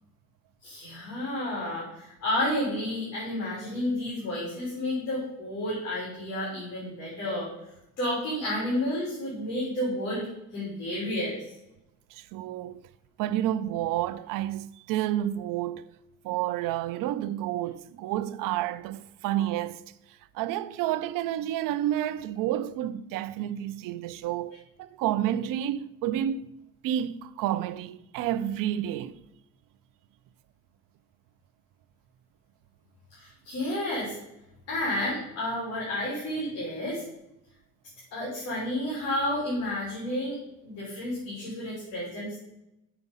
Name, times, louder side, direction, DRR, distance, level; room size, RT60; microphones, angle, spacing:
voice 1, 0.6-7.5 8.0-10.3 10.5-11.4 33.1-34.2 34.7-37.0 38.1-42.4, left 1 dB, 50° left, 3.6 m, -31 dB
voice 2, 12.1-12.8 13.2-15.9 16.2-19.8 20.3-26.5 26.8-29.2, right 12 dB, 80° right, 0.5 m, -30 dB
7.1 x 6.9 x 5.5 m
cardioid pair, 165°, 32 cm